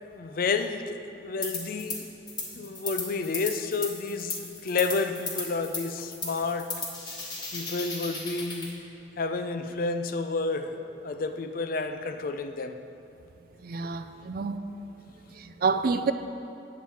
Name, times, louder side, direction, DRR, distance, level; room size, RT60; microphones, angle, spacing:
voice 1, 0.0-2.1 2.5-6.8 7.5-8.8 9.2-12.8, left 4 dB, 50° left, 8 dB, 0.4 m, -30 dB
sound 1, 1.4-2.0 2.3-8.7, left 3 dB, 25° left, 1.2 m, -35 dB
voice 2, 13.6-14.6 15.4-16.1, right 4 dB, 50° right, 10 dB, 0.4 m, -28 dB
9.0 x 7.2 x 4.3 m, 2.6 s
head